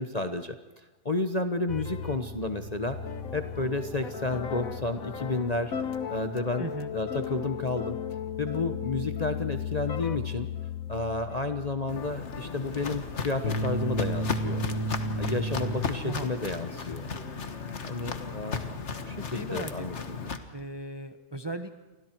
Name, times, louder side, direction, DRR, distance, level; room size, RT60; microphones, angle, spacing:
voice 1, 0.0-3.0 3.3-5.7 6.1-8.0 8.4-10.5 10.9-14.6 15.2-17.1 17.8-18.7 19.1-20.3, left 2 dB, 30° left, 7 dB, 1.0 m, -31 dB
sound 1, 1.7-15.8, left 3 dB, 65° left, 1.6 m, -34 dB
voice 2, 6.6-6.9 16.0-16.3 19.3-19.7 20.0-20.1 20.5-21.7, right 2 dB, 20° right, 8 dB, 0.9 m, -37 dB
Walk footsteps, 11.9-20.4, left 5 dB, 45° left, 1.7 m, -35 dB
30.0 x 24.5 x 4.6 m, 1.2 s
omnidirectional pair, 1.7 m